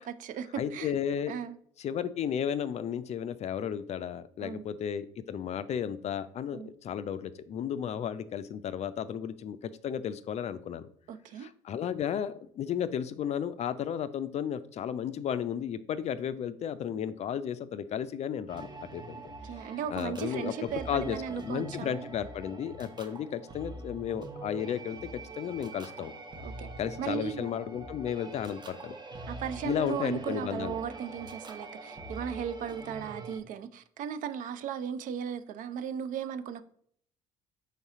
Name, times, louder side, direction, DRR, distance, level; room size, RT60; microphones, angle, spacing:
voice 1, 0.0-0.9 1.3-1.6 4.4-4.6 6.5-6.7 11.1-11.5 19.1-22.1 26.4-26.7 27.0-27.5 29.3-36.6, right 8 dB, 55° right, 0.4 m, -37 dB
voice 2, 0.6-1.3 1.8-10.9 11.4-19.2 19.9-26.1 26.8-28.9 29.6-30.8, left 8 dB, 45° left, 0.4 m, -33 dB
sound 1, 18.5-33.4, right 2 dB, 25° right, 0.9 m, -44 dB
4.1 x 3.5 x 3.6 m
hypercardioid pair, 55°, 16 cm